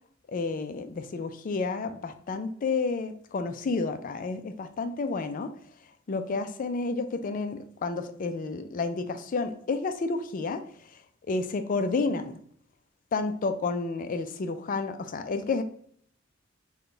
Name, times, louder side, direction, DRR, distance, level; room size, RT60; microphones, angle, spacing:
voice 1, 0.3-5.5 6.1-10.6 11.3-12.4 13.1-15.6, left 3 dB, 45° left, 9 dB, 0.4 m, -30 dB
3.8 x 2.3 x 3.7 m, 0.62 s
head